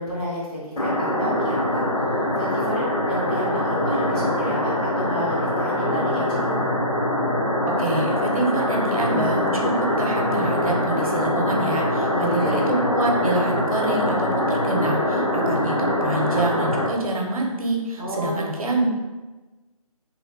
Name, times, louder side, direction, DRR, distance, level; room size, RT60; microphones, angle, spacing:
voice 1, 0.0-6.7 12.0-12.7 18.0-18.6, equal, 15° left, -12 dB, 0.4 m, -31 dB
sound 1, 0.8-16.9, left 1 dB, 65° left, 0.9 m, -23 dB
voice 2, 7.8-18.9, right 2 dB, 65° right, 0 dB, 0.7 m, -26 dB
3.0 x 2.2 x 3.8 m, 1.2 s
hypercardioid pair, 170°, 19 cm